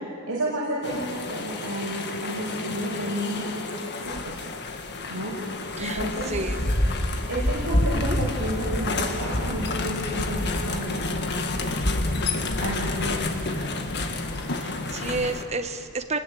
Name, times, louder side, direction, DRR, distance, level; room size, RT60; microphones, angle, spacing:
voice 1, 0.3-4.3 5.1-6.3 7.3-11.4 12.6-13.2, equal, 65° right, -6 dB, 5.7 m, -31 dB
sound 1, 0.8-15.4, left 2 dB, 50° left, 1.8 m, -28 dB
voice 2, 14.6-16.2, right 3 dB, 30° right, 7 dB, 1.3 m, -30 dB
29.0 x 21.0 x 8.7 m, 2.6 s
head